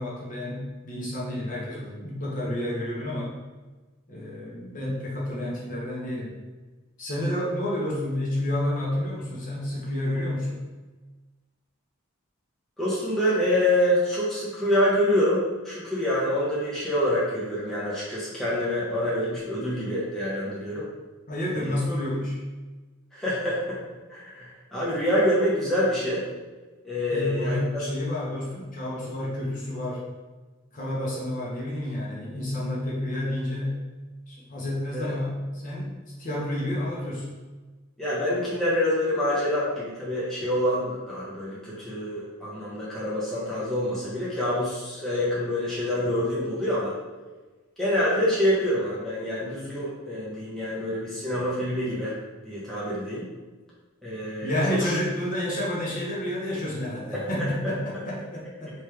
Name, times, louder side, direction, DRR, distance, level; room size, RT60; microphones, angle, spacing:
voice 1, 0.0-3.3 4.1-6.3 7.0-10.6 21.3-22.4 27.1-30.0 30.7-33.8 34.3-35.9 36.2-37.3 54.4-58.7, left 1 dB, 40° left, -4 dB, 0.9 m, -30 dB
voice 2, 12.8-20.9 21.5-21.8 23.1-23.8 24.1-26.2 26.8-27.6 34.9-35.1 38.0-46.9 47.8-52.2 52.4-53.3 54.0-54.9 57.1-57.5, left 1 dB, ahead, -9 dB, 0.8 m, -26 dB
3.1 x 3.0 x 3.4 m, 1.2 s
head